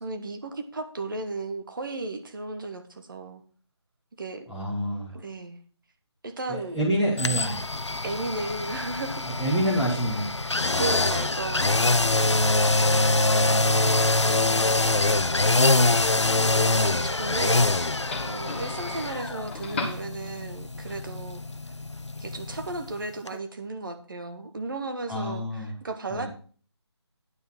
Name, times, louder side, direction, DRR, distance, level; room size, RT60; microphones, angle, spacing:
voice 1, 0.0-3.4 4.2-4.5 5.1-5.6 6.2-6.8 8.0-9.3 10.8-11.9 13.7-14.1 16.4-17.8 18.2-21.4 22.2-26.3, right 3 dB, 50° right, 7 dB, 1.4 m, -35 dB
voice 2, 4.5-5.1 6.5-7.6 9.4-10.3 25.1-25.7 26.1-26.3, right 1 dB, 5° right, -9 dB, 1.4 m, -27 dB
sound 1, 7.2-23.0 23.3-23.4, left 2 dB, 85° left, 0.7 m, -24 dB
Doorbell, 11.6-20.6, left 3 dB, 25° left, 1.5 m, -41 dB
9.6 x 5.5 x 6.1 m, 0.41 s
figure-of-eight pair, 155°, 15 cm